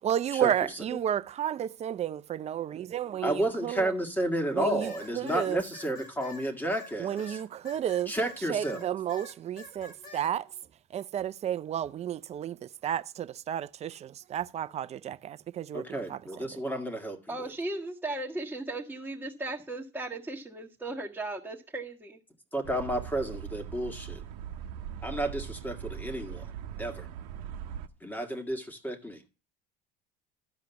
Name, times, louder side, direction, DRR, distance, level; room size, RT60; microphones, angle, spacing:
voice 1, 0.0-3.9 4.5-5.6 7.0-8.1 8.5-10.5 10.9-16.5, right 10 dB, 35° right, 0.5 m, -32 dB
voice 2, 3.2-7.4 8.1-8.9 15.7-17.5 22.5-24.2 25.0-26.5 26.8-27.1 28.0-29.2, right 1 dB, 10° left, 1.8 m, -32 dB
sound 1, 4.8-8.8 9.1-10.3, left 3 dB, 65° left, 5.7 m, -47 dB
voice 3, 17.3-22.2, right 2 dB, 10° right, 1.6 m, -36 dB
sound 2, 22.6-27.9, right 9 dB, 85° right, 0.8 m, -40 dB
13.0 x 5.0 x 7.0 m
supercardioid pair, 110°, 20 cm